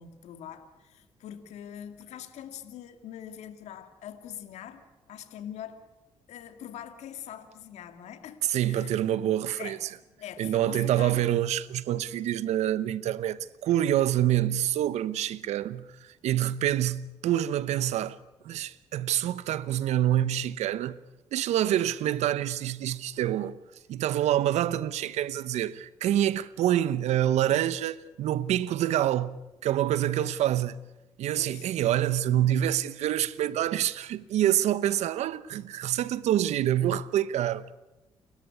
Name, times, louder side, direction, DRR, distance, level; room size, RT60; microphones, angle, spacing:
voice 1, 0.0-4.8 5.1-5.8 6.3-9.1 9.6-9.8 10.1-11.3 11.9-12.1 15.4-15.6 22.0-22.2 30.1-30.3 31.4-31.7, left 10 dB, 75° left, 2.2 m, -43 dB
voice 2, 8.5-9.8 10.4-18.2 18.4-21.0 21.3-23.6 23.9-29.3 29.6-30.8 31.2-37.7, right 12 dB, 75° right, 1.0 m, -26 dB
29.5 x 13.5 x 9.7 m
supercardioid pair, 70°, 12 cm